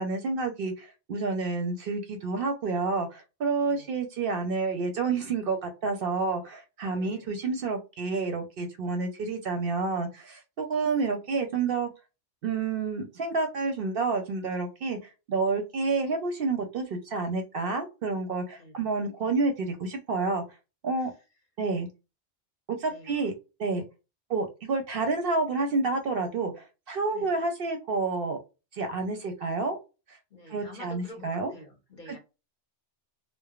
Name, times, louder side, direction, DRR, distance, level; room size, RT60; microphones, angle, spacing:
voice 1, 0.0-11.9 12.4-15.0 15.3-20.4 20.8-21.1 21.6-21.9 22.7-23.3 23.6-23.8 24.3-28.4 28.7-29.8 30.1-30.2 30.5-31.5 32.1-32.2, right 3 dB, 60° right, 0.7 m, -29 dB
voice 2, 3.6-3.9 6.9-7.3 18.6-18.7 21.0-21.1 22.9-23.3 27.1-27.4 30.3-32.2, left 1 dB, 45° left, 0.9 m, -48 dB
3.2 x 2.0 x 2.2 m
omnidirectional pair, 1.2 m